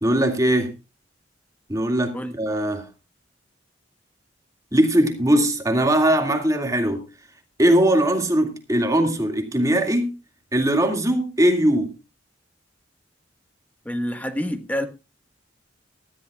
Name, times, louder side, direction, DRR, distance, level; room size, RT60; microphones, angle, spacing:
voice 1, 0.0-0.7 1.7-2.9 4.7-7.0 7.6-10.1 10.5-11.9, right 1 dB, 20° right, 2.2 m, -20 dB
voice 2, 13.8-14.8, equal, 10° left, 1.4 m, -27 dB
18.5 x 13.5 x 2.4 m
head